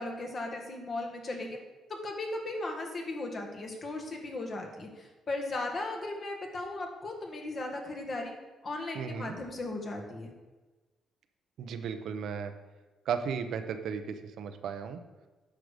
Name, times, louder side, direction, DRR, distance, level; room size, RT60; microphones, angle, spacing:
voice 1, 0.0-1.6 1.9-8.3 8.6-10.3, left 2 dB, 40° left, 2 dB, 1.7 m, -37 dB
voice 2, 8.9-9.3 11.6-12.5 13.1-15.0, right 6 dB, 70° right, 8 dB, 0.8 m, -35 dB
10.0 x 6.6 x 5.0 m, 1.2 s
cardioid pair, 125°, 0 cm